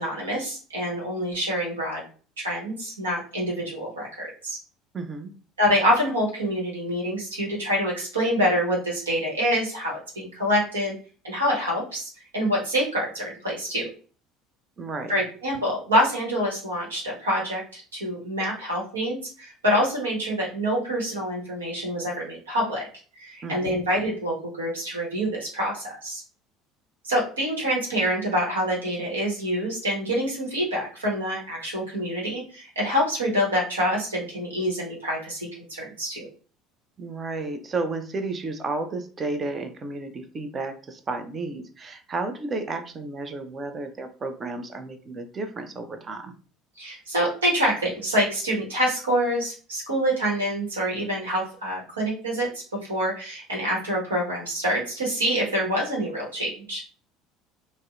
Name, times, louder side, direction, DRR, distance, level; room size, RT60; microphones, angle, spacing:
voice 1, 0.0-2.1 2.4-4.6 5.6-10.9 11.2-13.9 15.1-22.8 23.2-26.2 27.0-36.3 46.8-52.6 52.9-56.8, equal, 85° right, -3 dB, 1.0 m, -26 dB
voice 2, 4.9-5.3 14.8-15.1 23.4-23.8 37.0-46.3, right 3 dB, 35° right, 8 dB, 0.5 m, -32 dB
2.7 x 2.0 x 2.3 m, 0.38 s
figure-of-eight pair, 65°, 0 cm